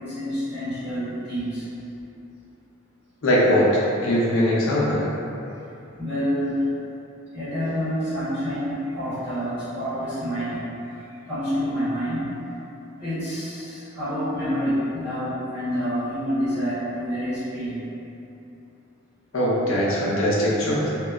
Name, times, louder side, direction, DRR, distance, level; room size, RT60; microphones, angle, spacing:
voice 1, 0.0-1.7 6.0-6.7 7.3-12.3 13.0-17.9, equal, ahead, -18 dB, 1.2 m, -28 dB
voice 2, 3.2-5.0 19.3-20.9, equal, 75° left, -7 dB, 0.5 m, -21 dB
2.8 x 2.2 x 2.3 m, 2.8 s
head